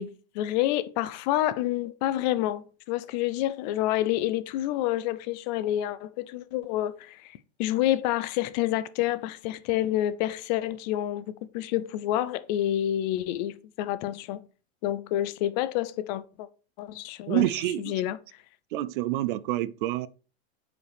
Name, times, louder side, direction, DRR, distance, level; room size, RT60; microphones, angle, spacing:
voice 1, 0.0-14.4 14.8-16.5 16.8-17.5 17.8-18.2, left 13 dB, 40° left, 0.5 m, -28 dB
voice 2, 17.3-17.9 18.7-20.1, right 15 dB, 50° right, 0.5 m, -27 dB
8.9 x 4.9 x 3.4 m
supercardioid pair, 140°, 33 cm